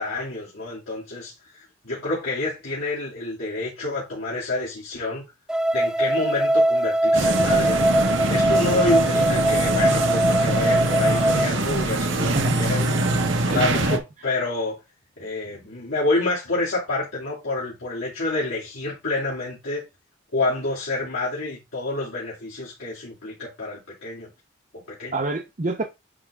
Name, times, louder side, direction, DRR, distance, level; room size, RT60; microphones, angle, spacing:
voice 1, 0.0-5.2 5.7-7.9 8.3-13.0 13.5-14.8 15.2-19.8 20.3-24.3 24.7-25.1, left 2 dB, 75° left, 2.6 m, -28 dB
sound 1, 5.5-11.5, right 1 dB, 5° right, 0.3 m, -21 dB
sound 2, 7.1-14.0, right 2 dB, 60° right, 1.2 m, -23 dB
voice 2, 13.5-14.3 25.1-25.8, right 2 dB, 35° right, 0.7 m, -28 dB
9.8 x 3.6 x 3.6 m
head